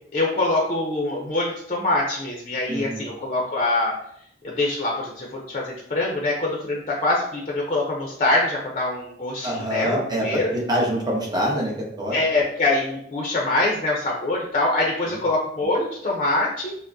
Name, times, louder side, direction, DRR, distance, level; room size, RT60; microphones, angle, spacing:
voice 1, 0.1-3.9 4.4-10.5 12.1-16.8, left 2 dB, 35° left, -2 dB, 0.6 m, -24 dB
voice 2, 2.7-3.0 9.4-12.2 15.0-15.2, equal, 25° right, -2 dB, 0.9 m, -25 dB
5.8 x 2.1 x 2.6 m, 0.71 s
head